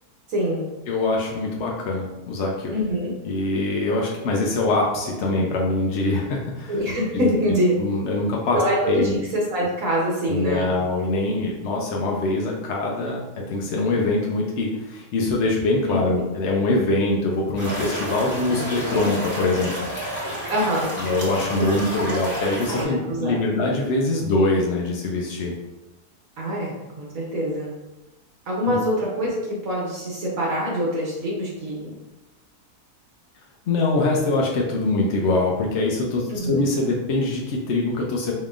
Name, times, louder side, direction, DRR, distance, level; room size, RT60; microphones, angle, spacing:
voice 1, 0.3-0.6 2.7-3.1 6.7-7.7 8.5-10.7 15.9-16.2 18.5-18.7 20.5-20.9 21.6-21.7 22.7-23.4 26.4-27.7 28.5-31.9 36.3-36.7, equal, 65° right, -4 dB, 1.2 m, -25 dB
voice 2, 0.9-2.7 3.2-6.7 7.1-7.3 7.8-8.6 8.9-9.1 10.3-19.7 21.0-25.5 28.7-28.8 33.7-38.3, left 2 dB, 60° left, -1 dB, 0.7 m, -23 dB
sound 1, 17.6-22.8, right 1 dB, 15° left, 1.3 m, -30 dB
4.2 x 3.6 x 2.4 m, 1.0 s
omnidirectional pair, 1.6 m